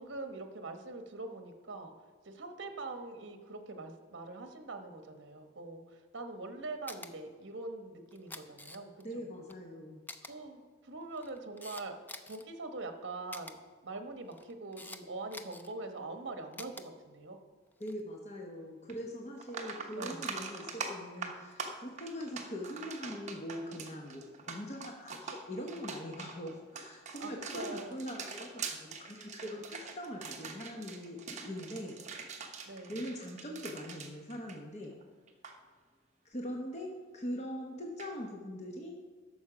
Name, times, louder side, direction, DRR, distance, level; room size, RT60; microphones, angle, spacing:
voice 1, 0.0-1.9 2.2-8.9 9.1-9.2 10.2-12.0 12.3-17.4 20.0-20.2 27.2-28.0 32.7-33.0, right 2 dB, 60° right, 6 dB, 1.1 m, -43 dB
Camera, 6.9-7.1 8.1-9.1 9.5-9.6 10.1-10.3 11.0-12.4 13.3-13.5 14.3-15.0 15.3-15.7 16.5-16.8 17.7-18.0, left 2 dB, 10° left, 0.4 m, -47 dB
voice 2, 9.0-10.0 17.8-32.0 32.9-34.9 36.2-39.0, equal, 35° left, 0 dB, 1.0 m, -42 dB
sound 1, 18.9-19.0 19.4-35.0 35.3-35.5 38.0-38.1, right 4 dB, 35° right, 1.0 m, -43 dB
11.5 x 7.0 x 5.0 m, 1.5 s
head